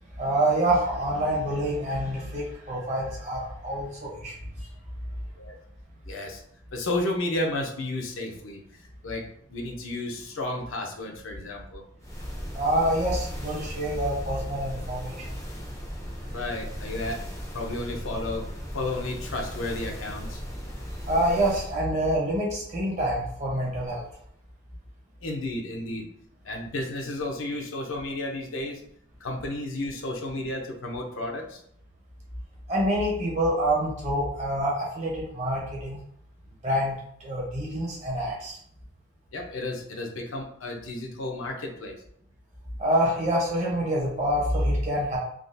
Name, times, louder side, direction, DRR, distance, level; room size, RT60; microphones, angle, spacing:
voice 1, 0.2-4.3 12.5-15.4 21.1-24.0 32.7-36.0 36.6-38.6 42.8-45.2, right 1 dB, 35° right, -3 dB, 0.8 m, -26 dB
voice 2, 6.1-6.4 6.7-8.6 9.0-9.2 9.5-11.8 16.3-17.2 17.5-18.4 18.7-20.4 25.2-26.1 26.4-28.8 29.2-31.6 39.3-42.0, left 2 dB, 75° left, 1 dB, 0.6 m, -32 dB
sound 1, 12.0-21.8, equal, 15° left, 0.5 m, -37 dB
3.5 x 2.3 x 2.6 m, 0.68 s
head